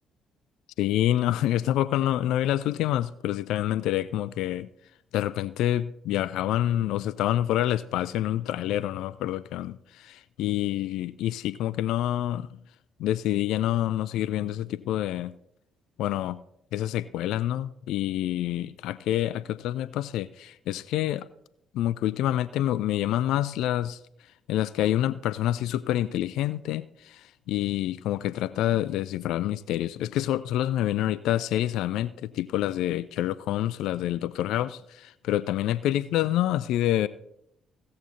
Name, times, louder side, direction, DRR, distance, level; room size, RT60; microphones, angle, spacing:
voice 1, 0.8-4.7 5.1-12.5 13.0-15.3 16.0-16.4 16.7-21.3 21.7-24.0 24.5-27.2 27.5-37.1, left 13 dB, 65° left, 0.3 m, -27 dB
16.0 x 7.6 x 4.2 m
figure-of-eight pair, 45°, 0 cm